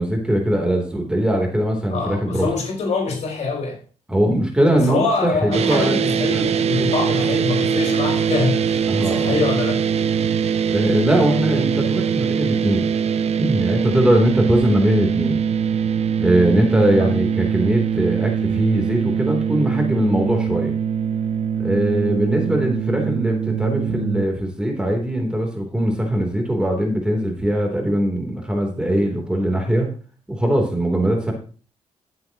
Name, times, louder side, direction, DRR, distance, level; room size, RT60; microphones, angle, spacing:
voice 1, 0.0-2.5 4.1-6.0 6.3-6.4 8.9-9.4 10.7-12.9 13.4-15.4 16.2-20.7 21.6-29.9 30.3-31.3, right 1 dB, 5° right, 3.4 m, -20 dB
voice 2, 1.9-3.8 4.7-9.8 17.0-17.1, left 4 dB, 70° left, 5.0 m, -24 dB
sound 1, 5.5-24.2, right 7 dB, 60° right, 0.7 m, -22 dB
16.5 x 7.9 x 3.0 m
cardioid pair, 110°, 12 cm